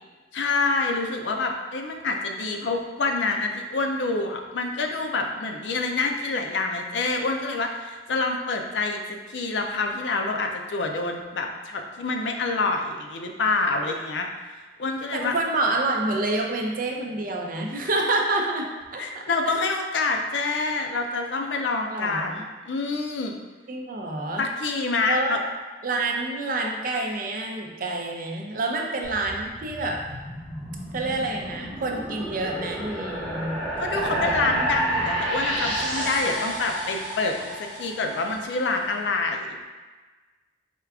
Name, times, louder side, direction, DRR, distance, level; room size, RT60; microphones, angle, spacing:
voice 1, 0.3-9.0 9.3-14.3 14.8-15.3 18.9-23.4 24.4-25.4 33.8-39.7, left 3 dB, 85° left, 3 dB, 0.5 m, -27 dB
voice 2, 15.1-18.7 18.9-19.5 21.9-22.4 23.7-24.5 25.1-25.4 25.8-30.0 30.9-34.2, right 2 dB, 50° right, 1 dB, 0.5 m, -28 dB
Flo x Fx tetra i, 29.0-38.4, right 1 dB, 10° left, 0.9 m, -30 dB
4.5 x 2.4 x 3.5 m, 1.3 s
head